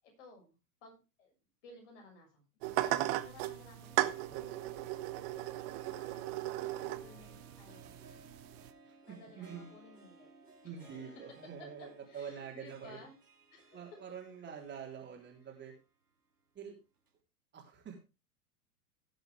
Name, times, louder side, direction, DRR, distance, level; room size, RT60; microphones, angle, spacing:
voice 1, 0.0-0.6 0.8-1.3 1.6-4.2 5.3-8.5 9.1-10.3 10.6-11.4 12.1-13.2 13.5-14.2, left 2 dB, 50° left, 2 dB, 7.0 m, -57 dB
sound 1, 2.6-8.7, right 16 dB, 40° right, 1.1 m, -37 dB
Wind instrument woodwind instrument, 3.4-7.9, left 3 dB, 5° left, 2.5 m, -62 dB
Harp, 3.8-15.8 16.1-16.2 17.1-17.2, right 3 dB, 80° right, 3.6 m, -60 dB
voice 2, 9.3-9.7 10.6-13.0 13.7-15.7 16.5-16.8 17.5-18.0, right 7 dB, 25° right, 0 dB, 3.8 m, -46 dB
17.5 x 7.9 x 3.6 m, 0.30 s
figure-of-eight pair, 95°, 45 cm